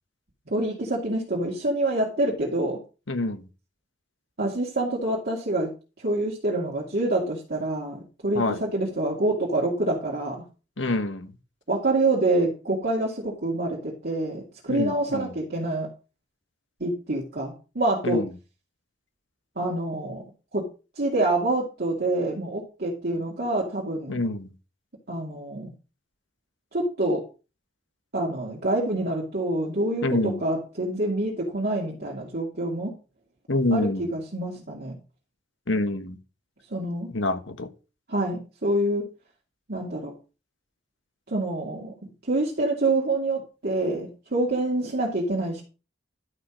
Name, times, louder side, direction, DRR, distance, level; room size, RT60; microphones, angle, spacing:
voice 1, 0.5-2.8 4.4-5.7 6.0-10.4 11.7-15.9 16.8-18.2 19.6-20.2 20.5-20.7 21.0-24.2 25.1-25.7 26.7-27.2 28.1-32.9 33.7-34.9 36.7-37.1 38.1-39.0 39.7-40.1 41.3-45.6, right 2 dB, 55° right, 2.6 m, -26 dB
voice 2, 3.1-3.4 8.3-8.6 10.8-11.3 14.7-15.3 18.0-18.2 24.1-24.5 30.0-30.4 33.5-34.1 35.7-36.2 37.1-37.7, left 2 dB, 90° left, 1.3 m, -26 dB
12.0 x 5.3 x 5.1 m
head